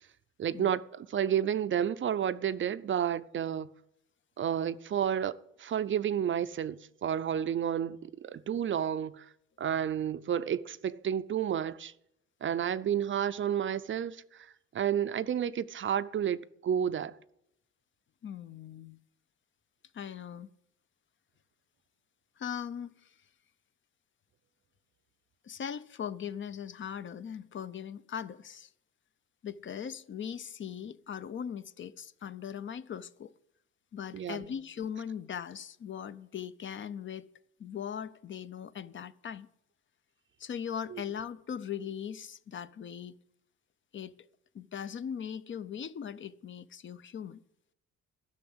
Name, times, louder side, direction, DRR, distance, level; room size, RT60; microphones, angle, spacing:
voice 1, 0.4-3.7 4.4-9.3 9.6-11.9 12.4-17.2 34.1-34.5 40.9-41.0, right 9 dB, 40° right, 0.4 m, -31 dB
voice 2, 18.2-19.0 19.9-20.5 22.4-23.2 25.4-28.7 29.4-33.3 33.9-37.3 37.6-39.5 40.4-43.2 43.9-44.1 44.5-47.4, left 8 dB, 40° left, 0.5 m, -39 dB
11.5 x 6.2 x 7.8 m
cardioid pair, 90°, 30 cm